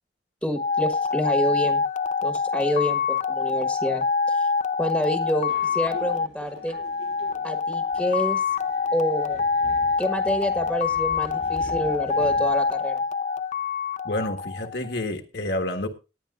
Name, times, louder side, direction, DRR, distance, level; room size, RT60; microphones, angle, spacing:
voice 1, 0.4-1.8 2.2-4.5 4.8-6.8 7.4-8.4 8.9-9.4 10.0-13.0, equal, ahead, 5 dB, 1.3 m, -28 dB
sound 1, 0.6-15.0, left 5 dB, 45° left, 0.5 m, -26 dB
Subway metro underground, 5.4-12.9, right 1 dB, 75° right, 6.5 m, -45 dB
voice 2, 14.0-15.9, left 1 dB, 70° left, 5 dB, 1.5 m, -29 dB
19.5 x 10.0 x 2.5 m, 0.29 s
head